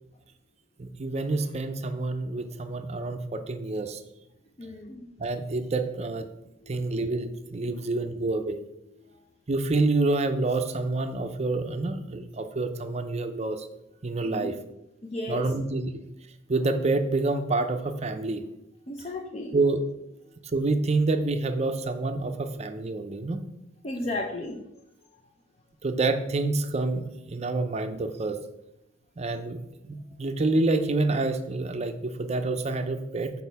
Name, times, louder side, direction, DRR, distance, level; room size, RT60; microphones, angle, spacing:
voice 1, 0.8-4.0 5.2-6.3 6.7-8.6 9.5-13.7 14.0-14.6 15.3-15.9 16.5-18.4 19.5-19.8 20.5-23.4 25.8-28.4 29.2-33.3, right 3 dB, 35° right, 8 dB, 0.5 m, -27 dB
voice 2, 4.6-5.1 6.6-6.9 7.6-7.8 8.9-9.2 14.2-14.5 15.1-15.5 18.9-19.6 23.8-24.6 25.1-25.2, left 2 dB, 30° left, 2 dB, 0.5 m, -35 dB
6.4 x 4.2 x 5.5 m, 0.88 s
head